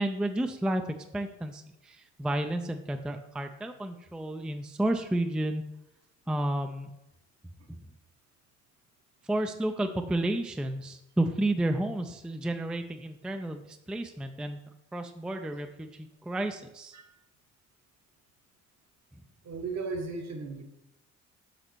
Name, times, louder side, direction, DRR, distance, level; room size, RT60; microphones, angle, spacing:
voice 1, 0.0-5.7 6.3-6.9 9.2-14.6 14.9-17.0, right 1 dB, 5° right, 7 dB, 0.3 m, -31 dB
voice 2, 19.4-20.6, right 4 dB, 60° right, 4 dB, 1.2 m, -36 dB
6.6 x 4.1 x 4.5 m, 0.88 s
cardioid pair, 90°, 30 cm